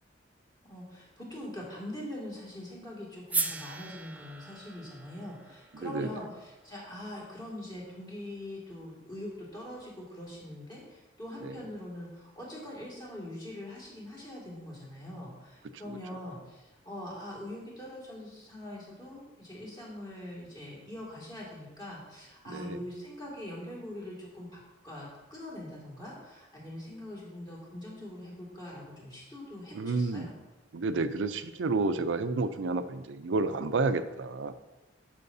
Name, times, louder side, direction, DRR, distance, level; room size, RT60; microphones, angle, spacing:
voice 1, 0.6-30.3, left 1 dB, 25° left, -5 dB, 2.2 m, -43 dB
sound 1, 3.3-7.5, right 3 dB, 10° right, 0.3 m, -38 dB
voice 2, 5.7-6.1 11.4-11.5 22.5-22.8 29.7-30.3 30.7-34.5, right 3 dB, 75° right, 11 dB, 0.5 m, -30 dB
13.0 x 5.7 x 2.7 m, 1.1 s
head